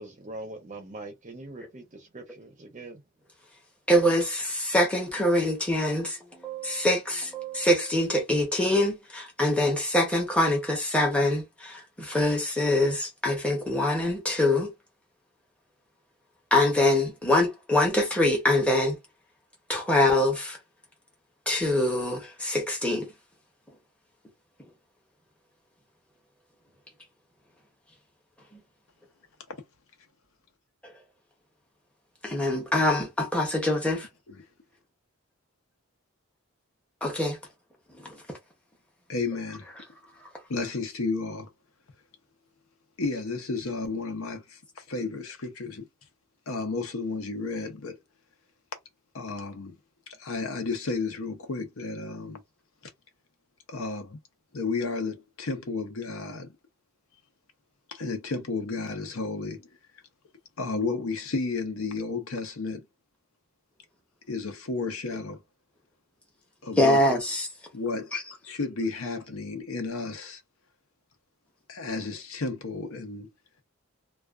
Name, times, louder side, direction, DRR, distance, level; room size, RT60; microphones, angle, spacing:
voice 1, 0.0-3.0, right 2 dB, 35° right, 0.6 m, -42 dB
voice 2, 3.9-14.7 16.5-19.0 19.7-20.6 21.5-23.1 28.5-28.6 30.8-30.9 32.2-34.0 37.0-37.4 37.9-38.2 66.8-67.5 68.1-68.2, left 1 dB, 5° left, 0.7 m, -24 dB
voice 3, 39.1-39.7 40.5-41.5 43.0-45.9 46.5-48.0 49.1-49.7 50.2-52.4 53.7-54.2 54.5-56.5 57.9-59.7 60.6-62.8 64.3-65.4 66.6-67.0 67.7-68.1 68.4-70.4 71.7-73.3, left 3 dB, 70° left, 0.7 m, -32 dB
2.3 x 2.3 x 2.3 m
head